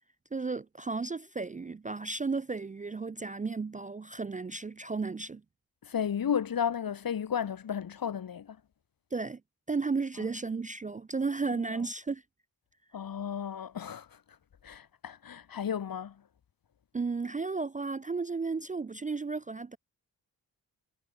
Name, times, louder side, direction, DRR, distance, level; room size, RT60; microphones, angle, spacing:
voice 1, 0.3-5.4 9.1-9.4 9.7-12.2 16.9-19.8, right 4 dB, 20° right, 0.4 m, -34 dB
voice 2, 5.8-8.6 12.9-14.2 14.6-16.2, left 8 dB, 60° left, 1.0 m, -33 dB
cardioid pair, 50°, 39 cm